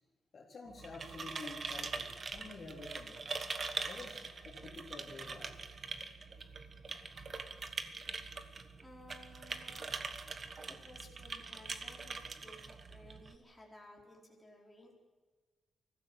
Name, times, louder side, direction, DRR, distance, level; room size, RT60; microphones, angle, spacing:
voice 1, 0.3-3.2 3.9-5.5, left 3 dB, 40° left, 0 dB, 3.9 m, -49 dB
sound 1, 0.7-13.4, right 4 dB, 35° right, 1.4 m, -43 dB
voice 2, 8.6-10.5 10.8-14.9, left 1 dB, ahead, -2 dB, 4.7 m, -57 dB
24.0 x 15.0 x 8.0 m, 1.3 s
wide cardioid pair, 160°, 0 cm